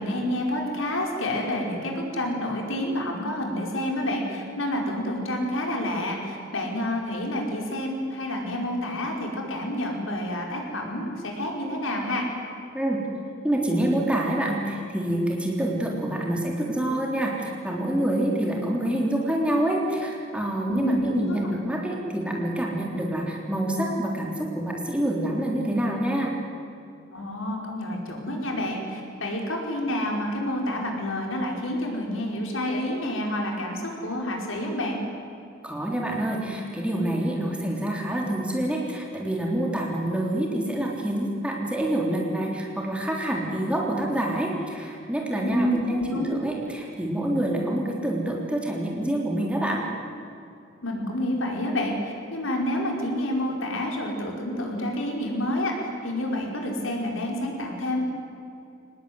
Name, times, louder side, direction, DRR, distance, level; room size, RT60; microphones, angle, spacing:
voice 1, 0.0-12.3 20.7-21.5 27.1-35.0 45.4-46.4 50.8-55.7 56.0-58.0, left 1 dB, 80° left, 1 dB, 5.1 m, -28 dB
voice 2, 13.4-26.4 35.6-49.8, right 1 dB, 5° right, -2 dB, 3.5 m, -27 dB
25.0 x 19.5 x 9.6 m, 2.5 s
head